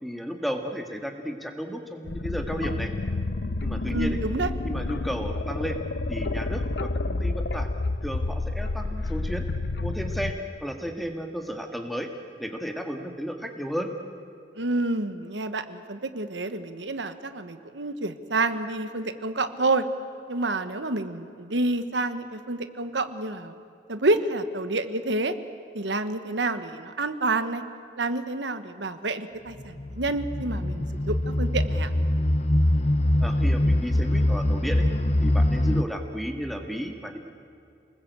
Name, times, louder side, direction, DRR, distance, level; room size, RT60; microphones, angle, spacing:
voice 1, 0.0-2.9 3.6-4.2 4.6-5.8 6.1-7.7 8.0-9.4 9.8-10.3 10.6-12.1 12.4-13.9 33.2-34.9 35.2-37.2, equal, ahead, 4 dB, 1.9 m, -33 dB
sound 1, 2.1-10.3, left 2 dB, 70° left, 0.7 m, -29 dB
voice 2, 3.9-4.5 14.5-19.8 20.3-23.5 23.9-25.3 25.7-27.6 28.0-31.9, right 2 dB, 90° right, 10 dB, 1.4 m, -28 dB
sound 2, 29.6-35.8, left 1 dB, 35° left, 0.8 m, -23 dB
28.5 x 20.0 x 8.3 m, 2.6 s
head